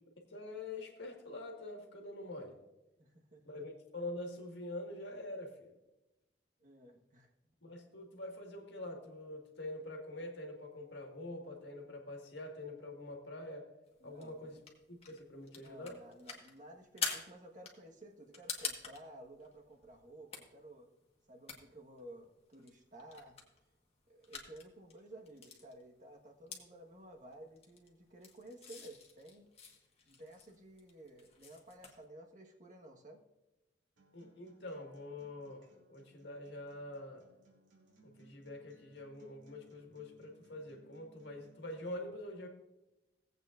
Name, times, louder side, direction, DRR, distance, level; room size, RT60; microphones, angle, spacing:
voice 1, 0.3-2.6 3.5-5.7 7.6-13.7 14.0-14.6 14.9-16.0 34.1-37.3 38.0-42.5, left 1 dB, 65° left, 1 dB, 1.8 m, -45 dB
voice 2, 3.0-3.4 6.6-7.3 14.0-14.6 15.5-20.9 21.3-23.4 24.1-29.5 30.1-33.2, right 1 dB, 45° right, 1 dB, 1.4 m, -54 dB
sound 1, 13.8-32.0, left 5 dB, 35° left, 1.5 m, -48 dB
Acoustic guitar, 34.0-41.9, right 3 dB, 80° right, 2.6 m, -66 dB
18.0 x 8.2 x 2.5 m, 1.0 s
head